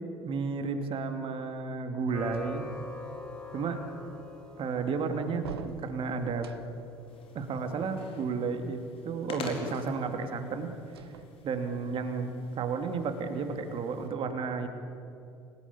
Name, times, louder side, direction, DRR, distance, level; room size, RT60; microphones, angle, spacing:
voice 1, 0.2-2.7 3.5-3.8 4.6-6.5 7.3-10.7 11.4-14.7, right 4 dB, 40° right, 6 dB, 2.8 m, -32 dB
sound 1, 2.1-8.1, left 3 dB, 5° left, 4.1 m, -46 dB
sound 2, 2.3-3.1 5.4-7.0 10.9-11.9, right 9 dB, 75° right, 0.9 m, -46 dB
sound 3, 7.1-14.1, left 3 dB, 45° left, 4.5 m, -46 dB
27.5 x 17.5 x 8.7 m, 2.6 s
figure-of-eight pair, 60°, 13 cm